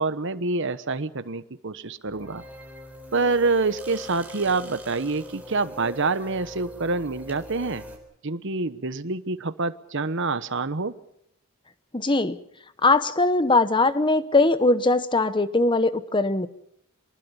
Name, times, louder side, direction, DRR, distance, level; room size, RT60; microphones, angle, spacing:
voice 1, 0.0-2.4 3.1-7.8 8.2-10.9, right 3 dB, 55° right, 12 dB, 1.1 m, -26 dB
sound 1, 2.0-8.0, left 1 dB, 5° right, 4.0 m, -41 dB
voice 2, 11.9-12.4 12.8-16.5, left 2 dB, 20° left, 13 dB, 1.0 m, -21 dB
24.5 x 20.5 x 7.1 m, 0.71 s
head